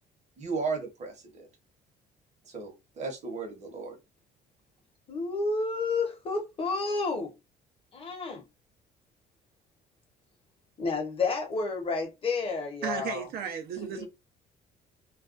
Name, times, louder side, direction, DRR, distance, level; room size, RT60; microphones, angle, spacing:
voice 1, 0.4-1.5 2.5-4.0, right 4 dB, 45° right, 0.9 m, -35 dB
voice 2, 5.1-7.3 7.9-8.4 10.8-13.3 13.8-14.1, left 3 dB, 35° left, 0.9 m, -30 dB
voice 3, 12.8-14.0, right 8 dB, 65° right, 0.6 m, -34 dB
2.4 x 2.2 x 2.4 m
cardioid pair, 110°, 17 cm